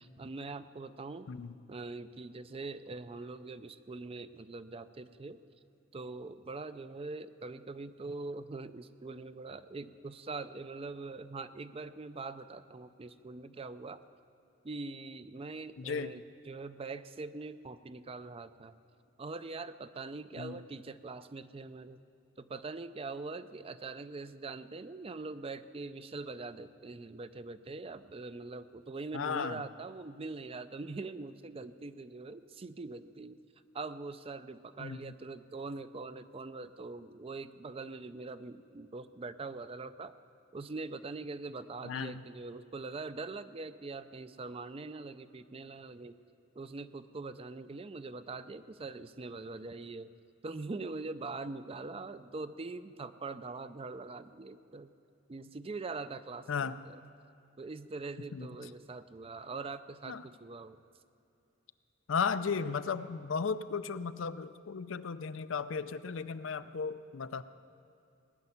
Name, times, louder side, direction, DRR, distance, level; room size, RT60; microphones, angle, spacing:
voice 1, 0.0-1.3 1.7-5.4 5.9-14.0 14.6-18.7 19.2-22.0 22.4-33.4 33.7-40.1 40.5-46.2 46.6-50.1 50.4-54.9 55.3-57.0 57.6-60.8, right 3 dB, 30° right, 12 dB, 0.5 m, -43 dB
voice 2, 15.8-16.1 20.4-20.6 29.1-29.6 34.8-35.0 41.8-42.2 56.5-56.8 58.3-58.5 60.1-60.2 62.1-67.4, left 5 dB, 70° left, 13 dB, 0.5 m, -35 dB
18.5 x 6.8 x 9.8 m, 2.7 s
head